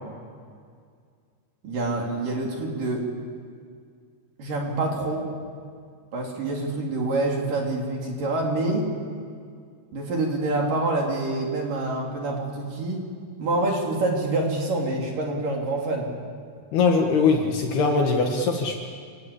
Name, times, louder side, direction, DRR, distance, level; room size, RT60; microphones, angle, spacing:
voice 1, 1.6-3.1 4.4-5.3 6.1-8.9 9.9-13.0 13.4-16.1, right 2 dB, 45° right, 0 dB, 4.5 m, -26 dB
voice 2, 16.7-18.8, left 4 dB, 60° left, 2 dB, 3.2 m, -21 dB
29.0 x 18.0 x 8.5 m, 2.1 s
omnidirectional pair, 5.7 m